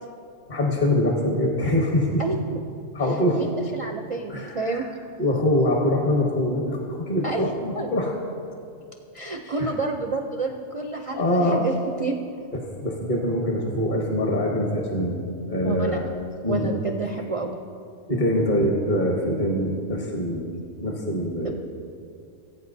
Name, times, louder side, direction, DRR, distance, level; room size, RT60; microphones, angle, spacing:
voice 1, 0.5-2.2 2.9-3.4 4.3-4.8 5.2-8.1 9.4-9.7 11.1-11.7 12.8-15.2 15.5-16.1 16.4-16.7 18.1-20.5 20.8-21.5, left 1 dB, 40° left, -1 dB, 1.2 m, -24 dB
voice 2, 2.2-2.6 3.3-4.9 7.2-7.5 7.8-7.9 9.1-11.7 12.0-12.2 15.6-16.0 16.4-17.6 21.4-21.5, right 3 dB, 50° right, 3 dB, 0.4 m, -29 dB
19.0 x 8.8 x 2.7 m, 2.4 s
omnidirectional pair, 1.3 m